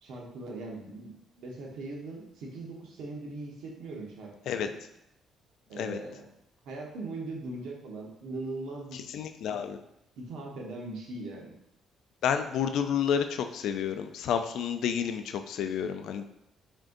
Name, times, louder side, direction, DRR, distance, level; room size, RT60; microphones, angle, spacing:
voice 1, 0.0-4.3 4.6-4.7 5.7-6.3 6.6-9.0 9.4-9.7 10.2-11.5, right 2 dB, 80° right, -1 dB, 1.0 m, -40 dB
voice 2, 8.9-9.8 12.2-16.2, left 8 dB, 65° left, 8 dB, 0.3 m, -30 dB
4.3 x 3.7 x 2.6 m, 0.80 s
cardioid pair, 175°, 0 cm